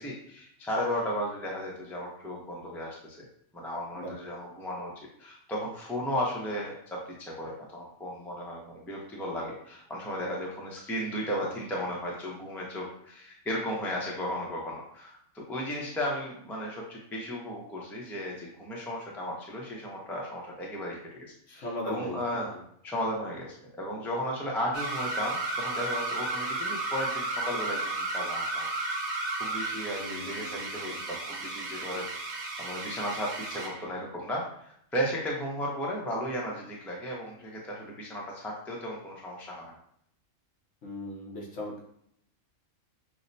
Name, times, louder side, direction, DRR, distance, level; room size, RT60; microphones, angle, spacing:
voice 1, 0.0-3.2 3.5-4.9 5.2-22.5 22.8-28.7 29.4-39.7, equal, 5° left, -3 dB, 0.3 m, -35 dB
voice 2, 21.5-22.6 29.9-31.0 40.8-41.8, left 1 dB, 60° left, -2 dB, 1.2 m, -39 dB
sound 1, 24.7-33.8, right 2 dB, 60° right, 1.0 m, -33 dB
6.2 x 2.1 x 2.6 m, 0.70 s
omnidirectional pair, 1.4 m